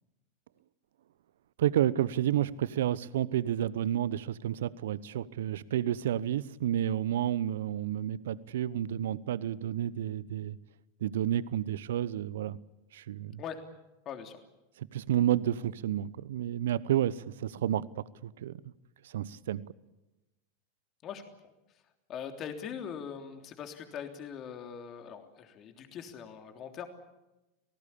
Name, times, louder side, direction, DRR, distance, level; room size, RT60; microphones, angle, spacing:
voice 1, 1.6-10.6 11.0-12.6 12.9-13.4 14.8-18.7 19.0-19.6, right 11 dB, 70° right, 20 dB, 0.9 m, -30 dB
voice 2, 14.0-14.4 21.0-21.5 22.1-26.9, left 7 dB, 40° left, 5 dB, 3.3 m, -41 dB
29.0 x 18.5 x 8.6 m, 1.0 s
hypercardioid pair, 90°, 0 cm